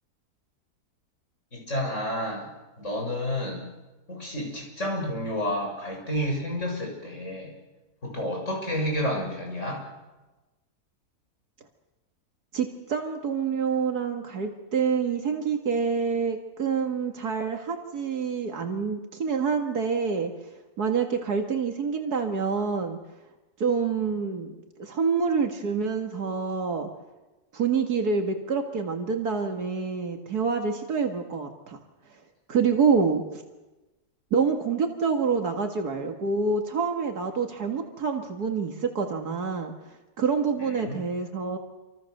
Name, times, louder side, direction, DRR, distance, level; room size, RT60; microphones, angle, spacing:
voice 1, 1.5-2.5 2.8-3.7 4.1-7.5 8.0-9.8 40.6-41.0, equal, 50° left, 0 dB, 7.1 m, -30 dB
voice 2, 12.5-20.3 20.8-23.0 23.6-26.9 27.5-31.8 32.5-33.4 34.3-39.7 40.2-41.6, right 5 dB, 80° right, 4 dB, 2.3 m, -27 dB
28.0 x 25.5 x 6.6 m, 1.1 s
omnidirectional pair, 1.6 m